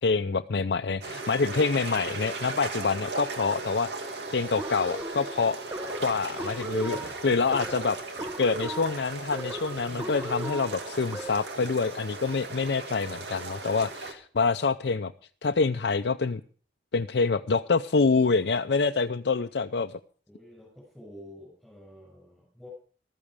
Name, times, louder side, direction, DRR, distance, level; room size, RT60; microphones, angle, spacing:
voice 1, 0.0-3.9 4.3-5.6 6.0-15.1 15.4-16.4 16.9-19.9, left 4 dB, 70° left, 6 dB, 0.5 m, -26 dB
sound 1, 1.0-14.1, right 3 dB, 80° right, 2.2 m, -37 dB
sound 2, 4.6-11.6, right 1 dB, 15° right, 1.0 m, -38 dB
voice 2, 9.8-10.2 20.3-22.7, left 1 dB, ahead, -4 dB, 6.6 m, -48 dB
14.0 x 13.5 x 5.0 m, 0.43 s
head